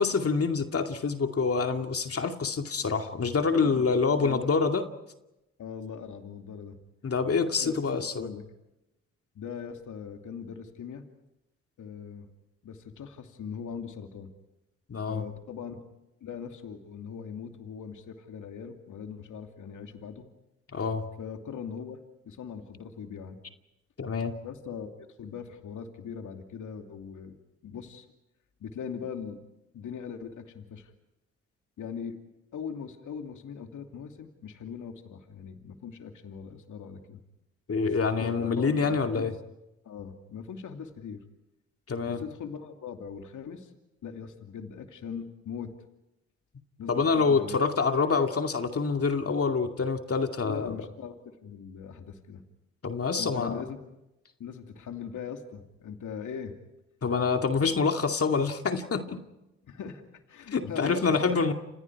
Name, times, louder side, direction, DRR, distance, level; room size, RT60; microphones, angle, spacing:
voice 1, 0.0-4.9 7.0-8.3 14.9-15.2 20.7-21.1 24.0-24.4 37.7-39.3 41.9-42.2 46.9-50.7 52.8-53.6 57.0-59.2 60.5-61.5, left 5 dB, 45° left, 5 dB, 2.4 m, -26 dB
voice 2, 3.6-4.5 5.6-6.8 7.6-8.5 9.3-11.1 11.8-12.3 12.6-14.3 15.1-15.8 16.2-20.3 21.2-23.4 24.4-27.4 27.6-28.1 28.6-29.4 29.7-30.9 31.8-32.2 32.5-37.2 37.8-39.3 39.8-41.2 42.1-43.7 44.0-45.7 46.8-47.6 50.4-52.4 53.2-53.8 54.4-56.5 59.6-60.0 60.3-61.4, left 7 dB, 65° left, 5 dB, 2.7 m, -40 dB
29.5 x 28.5 x 4.7 m, 0.94 s
hypercardioid pair, 50°, 33 cm